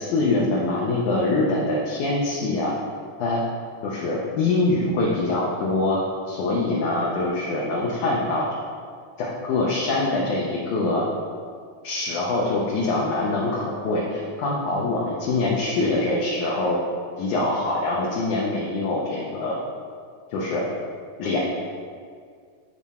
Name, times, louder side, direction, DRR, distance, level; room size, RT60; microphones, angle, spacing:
voice 1, 0.0-2.7 3.2-3.4 3.8-6.0 6.3-8.5 9.2-11.1 11.8-16.8 17.2-19.6 20.3-20.7 21.2-21.4, left 2 dB, 75° left, -4 dB, 1.9 m, -24 dB
8.2 x 4.3 x 4.1 m, 2.1 s
omnidirectional pair, 4.2 m